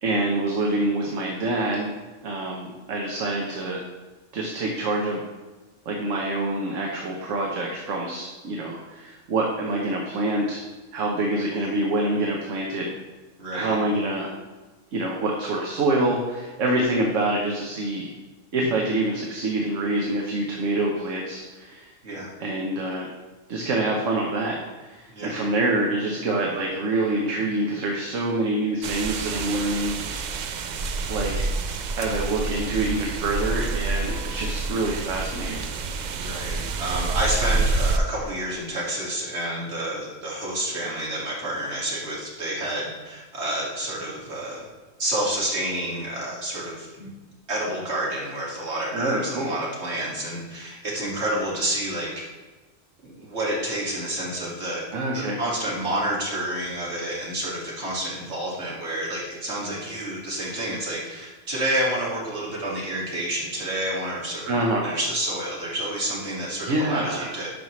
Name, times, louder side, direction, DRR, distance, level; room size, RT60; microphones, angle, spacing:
voice 1, 0.0-1.9 2.2-3.8 4.3-5.2 5.9-10.6 10.9-12.9 13.5-14.3 14.9-18.1 18.5-21.9 22.4-23.1 23.5-30.0 31.1-31.4 32.0-35.6 48.9-49.6 54.9-55.4 64.5-64.9 66.6-67.3, right 2 dB, 75° right, -1 dB, 1.2 m, -26 dB
voice 2, 13.4-13.8 22.0-22.3 25.1-25.3 36.2-44.6 45.0-47.1 47.5-52.3 53.0-54.8 55.1-67.5, right 1 dB, 55° right, -4 dB, 2.3 m, -29 dB
sound 1, 28.8-38.0, right 3 dB, 90° right, 0.4 m, -28 dB
11.5 x 5.3 x 3.1 m, 1.3 s
omnidirectional pair, 1.3 m